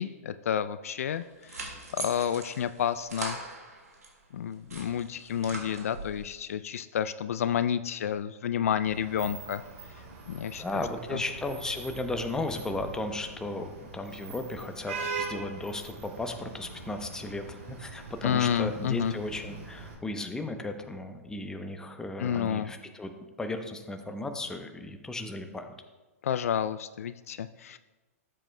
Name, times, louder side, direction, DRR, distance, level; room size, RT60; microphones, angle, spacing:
voice 1, 0.0-3.4 4.3-9.6 10.3-10.6 11.1-11.2 18.2-19.2 22.2-22.7 26.2-27.8, left 9 dB, 70° left, 13 dB, 0.3 m, -30 dB
sound 1, 1.1-4.1 4.5-6.2, right 2 dB, 85° right, 1.8 m, -41 dB
Vehicle horn car horn honking / Traffic noise roadway noise, 8.8-19.9, right 4 dB, 55° right, 2.6 m, -42 dB
voice 2, 10.6-23.1 23.4-25.7, left 2 dB, 10° left, 6 dB, 0.7 m, -35 dB
13.0 x 7.6 x 2.2 m, 1.2 s
hypercardioid pair, 115°, 8 cm